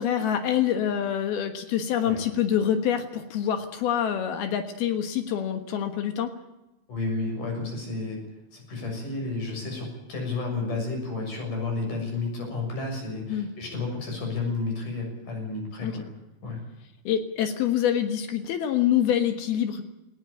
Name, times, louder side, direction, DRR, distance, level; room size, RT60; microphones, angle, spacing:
voice 1, 0.0-6.3 13.3-13.5 15.8-15.9 17.0-19.8, left 9 dB, 75° left, 8 dB, 3.2 m, -26 dB
voice 2, 6.9-8.2 8.5-16.1 16.4-16.6, left 3 dB, 50° left, 2 dB, 8.3 m, -31 dB
19.5 x 17.0 x 8.7 m, 0.97 s
omnidirectional pair, 4.6 m